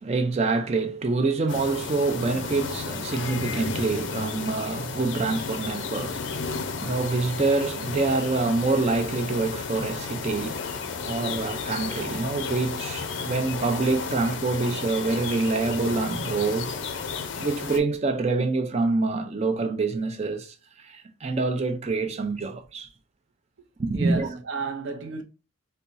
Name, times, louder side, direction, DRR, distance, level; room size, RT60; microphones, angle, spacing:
voice 1, 0.0-10.6 11.0-16.8 17.4-22.9 23.8-24.3, right 3 dB, 30° right, 0.4 m, -26 dB
sound 1, 1.5-17.8, left 5 dB, 65° left, 0.4 m, -33 dB
voice 2, 23.9-25.2, right 4 dB, 70° right, 0.7 m, -32 dB
4.1 x 2.3 x 2.5 m
head